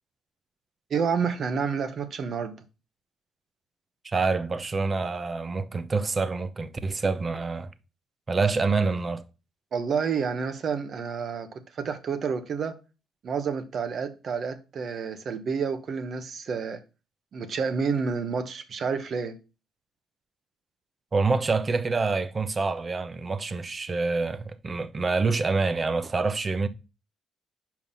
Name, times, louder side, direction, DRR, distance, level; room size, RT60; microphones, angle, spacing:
voice 1, 0.9-2.6 9.7-12.8 13.2-16.8 17.3-19.4, right 6 dB, 55° right, 1.1 m, -29 dB
voice 2, 4.0-7.7 8.3-9.2 21.1-26.7, right 4 dB, 30° right, 0.7 m, -26 dB
5.5 x 4.7 x 5.5 m
cardioid pair, 90°, 0 cm